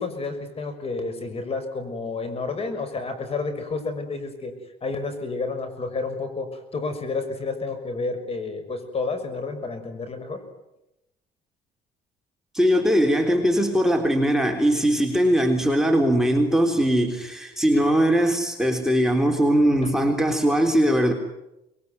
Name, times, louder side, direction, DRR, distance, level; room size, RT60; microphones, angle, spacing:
voice 1, 0.0-4.5 4.8-10.4, left 3 dB, 35° left, 9 dB, 6.1 m, -30 dB
voice 2, 12.5-21.1, equal, 5° right, 2 dB, 3.6 m, -20 dB
26.5 x 22.0 x 9.5 m, 0.91 s
cardioid pair, 110°, 17 cm